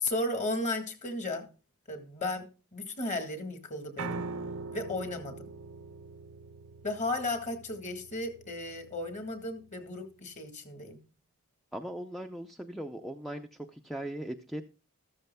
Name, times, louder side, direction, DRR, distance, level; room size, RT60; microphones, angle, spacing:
voice 1, 0.0-1.5 1.9-4.2 4.7-5.5 6.8-11.0, left 2 dB, 30° left, 1.8 m, -34 dB
Piano, 4.0-10.1, right 3 dB, 70° right, 0.6 m, -43 dB
voice 2, 11.7-14.7, right 1 dB, ahead, 0.5 m, -39 dB
14.0 x 13.5 x 2.2 m
head